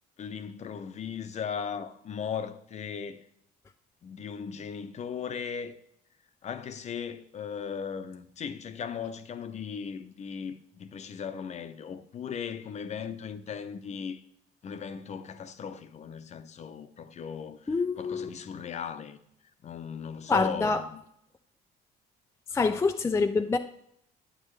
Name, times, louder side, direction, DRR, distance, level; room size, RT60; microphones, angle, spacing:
voice 1, 0.2-3.2 4.0-5.7 6.4-14.2 14.6-19.2 19.6-21.0, left 7 dB, 40° left, 0.7 m, -37 dB
voice 2, 17.7-18.3 20.3-20.8 22.5-23.6, left 4 dB, 15° left, 0.4 m, -26 dB
8.8 x 8.5 x 3.2 m
cardioid pair, 110°, 17 cm